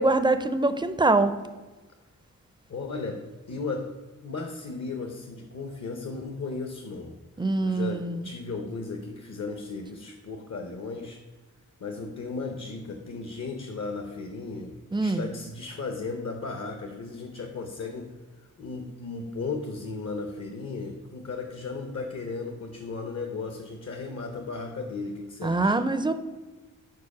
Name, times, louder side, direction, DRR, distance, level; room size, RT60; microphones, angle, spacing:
voice 1, 0.0-1.3 7.4-8.3 14.9-15.2 25.4-26.1, right 2 dB, 15° right, 10 dB, 0.4 m, -24 dB
voice 2, 2.7-3.2 3.5-3.9 4.2-7.2 7.6-11.2 11.8-18.1 18.6-25.8, left 4 dB, 50° left, 4 dB, 0.7 m, -35 dB
4.7 x 4.6 x 5.9 m, 1.2 s
wide cardioid pair, 70°, 34 cm